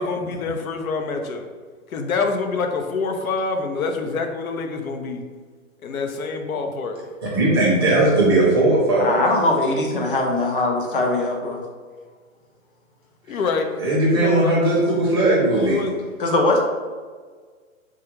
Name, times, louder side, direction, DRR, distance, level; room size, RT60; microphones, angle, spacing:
voice 1, 0.0-1.4 1.9-5.2 5.8-7.0 13.3-13.8 14.1-14.6 15.4-16.1, left 4 dB, 85° left, 5 dB, 0.6 m, -26 dB
voice 2, 7.3-9.2 13.8-15.8, right 2 dB, 20° right, -6 dB, 0.5 m, -18 dB
voice 3, 9.0-11.6 16.2-16.6, left 2 dB, 40° left, 2 dB, 0.5 m, -21 dB
3.6 x 2.3 x 2.9 m, 1.5 s
hypercardioid pair, 160°, 41 cm